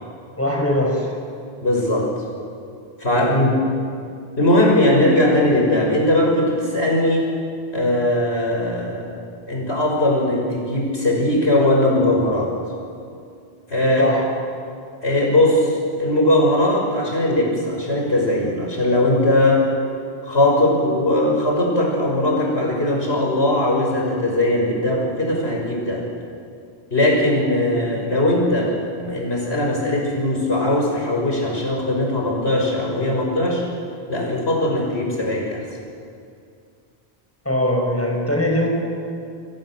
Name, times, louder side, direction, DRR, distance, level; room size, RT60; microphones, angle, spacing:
voice 1, 0.4-1.1 3.3-3.6 14.0-14.2 37.4-38.7, left 1 dB, 15° left, 0 dB, 6.1 m, -21 dB
voice 2, 1.6-2.1 3.0-3.5 4.4-7.3 7.7-12.5 13.7-14.1 15.0-19.6 20.2-26.0 26.9-33.6 34.1-35.6, left 1 dB, 75° left, -1 dB, 6.8 m, -19 dB
29.5 x 22.5 x 7.9 m, 2.3 s
omnidirectional pair, 1.1 m